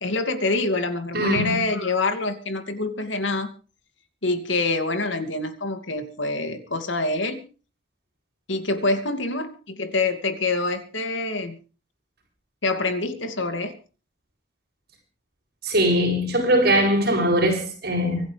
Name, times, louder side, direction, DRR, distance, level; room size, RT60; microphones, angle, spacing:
voice 1, 0.0-3.5 4.2-7.4 8.5-11.6 12.6-13.8, left 3 dB, 75° left, 2.7 m, -26 dB
voice 2, 1.1-1.6 15.6-18.2, equal, 50° right, 7.6 m, -21 dB
25.0 x 11.5 x 3.5 m
head